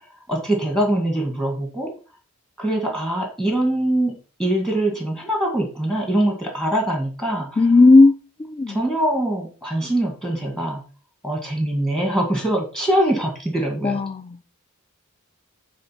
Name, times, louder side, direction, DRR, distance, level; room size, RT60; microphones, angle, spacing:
voice 1, 0.3-1.9 2.6-7.7 8.7-10.8 11.2-14.0, right 1 dB, 5° left, 2.1 m, -23 dB
voice 2, 7.6-8.1 8.4-8.8 13.8-14.4, left 3 dB, 25° left, 0.6 m, -14 dB
9.5 x 4.3 x 5.9 m
head